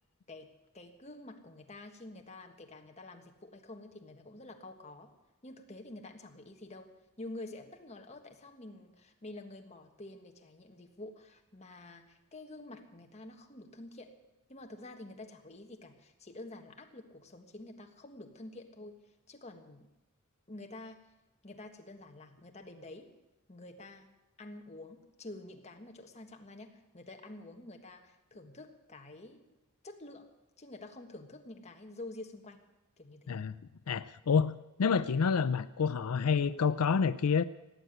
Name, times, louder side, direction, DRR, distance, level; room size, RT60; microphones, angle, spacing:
voice 1, 0.3-5.1 5.4-14.1 14.5-18.9 19.3-19.9 20.5-21.0 21.4-23.1 23.5-29.4 29.8-30.3 30.6-32.7 33.0-33.4, left 2 dB, 30° left, 4 dB, 1.5 m, -48 dB
voice 2, 33.9-37.4, left 6 dB, 90° left, 14 dB, 0.5 m, -28 dB
17.5 x 7.9 x 9.2 m, 1.0 s
head